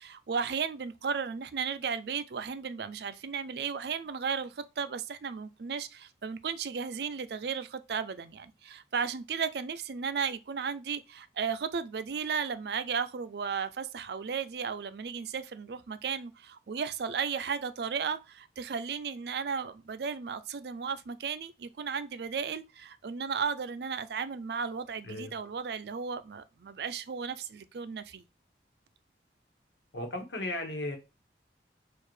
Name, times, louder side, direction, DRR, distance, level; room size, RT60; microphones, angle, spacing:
voice 1, 0.0-28.2, right 6 dB, 65° right, 0.4 m, -35 dB
voice 2, 29.9-31.0, left 1 dB, 90° left, 1.3 m, -35 dB
6.5 x 2.5 x 3.2 m
head